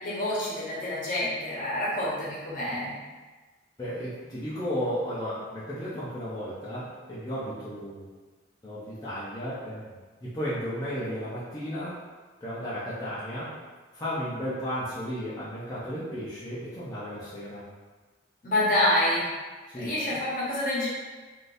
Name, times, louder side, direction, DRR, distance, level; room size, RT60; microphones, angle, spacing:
voice 1, 0.0-3.0 18.4-19.3 19.8-20.9, left 1 dB, 50° left, -7 dB, 1.1 m, -27 dB
voice 2, 3.8-8.1 8.6-12.0 12.4-13.6 13.9-17.6 19.7-20.2, equal, 20° left, -11 dB, 0.6 m, -34 dB
3.7 x 2.6 x 2.6 m, 1.3 s
head